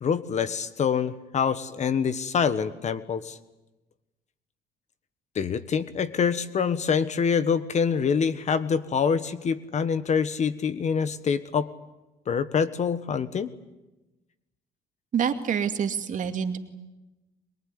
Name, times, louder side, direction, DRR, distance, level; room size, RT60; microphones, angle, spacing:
voice 1, 0.0-3.4 5.3-11.7 12.3-13.5, left 6 dB, 45° left, 13 dB, 1.3 m, -25 dB
voice 2, 15.1-16.6, right 7 dB, 50° right, 6 dB, 2.4 m, -26 dB
23.0 x 23.0 x 9.7 m, 1.0 s
cardioid pair, 110°, 17 cm